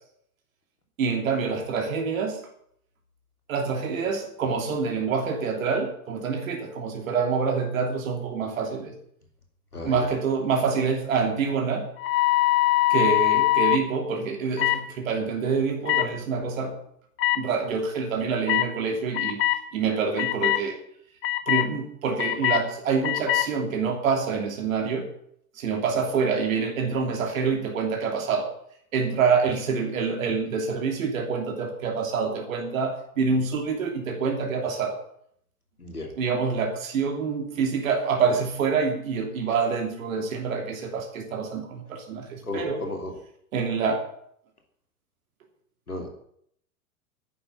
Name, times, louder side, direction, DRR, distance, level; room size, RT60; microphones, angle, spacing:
voice 1, 1.0-2.4 3.5-8.9 9.8-11.9 12.9-16.8 17.3-20.8 21.5-25.1 25.5-28.5 28.9-35.0 36.2-42.8 43.5-44.1, right 5 dB, 65° right, 3 dB, 3.0 m, -26 dB
voice 2, 9.7-10.1 35.8-36.1 42.4-43.1 45.9-46.1, left 2 dB, 85° left, 4 dB, 3.0 m, -34 dB
sound 1, 12.0-13.8 14.6-14.8 15.9-16.1 17.2-17.4 18.5-18.7 19.1-19.6 20.2-20.6 21.2-21.7 22.2-22.6 23.0-23.5, left 16 dB, 30° left, 1.2 m, -22 dB
11.0 x 9.7 x 8.4 m, 0.68 s
figure-of-eight pair, 85°, 44 cm